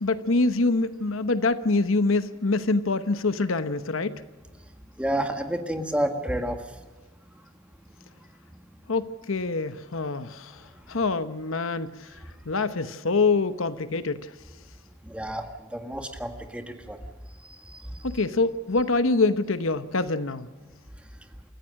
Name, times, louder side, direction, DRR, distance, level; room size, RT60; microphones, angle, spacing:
voice 1, 0.0-4.2 8.9-10.6 10.9-12.1 12.5-14.3 18.0-20.5, left 3 dB, 65° left, 1.0 m, -25 dB
voice 2, 5.0-6.6 15.1-15.5 15.7-17.0 17.9-18.0, right 1 dB, 5° right, 1.7 m, -29 dB
28.5 x 15.0 x 6.5 m
head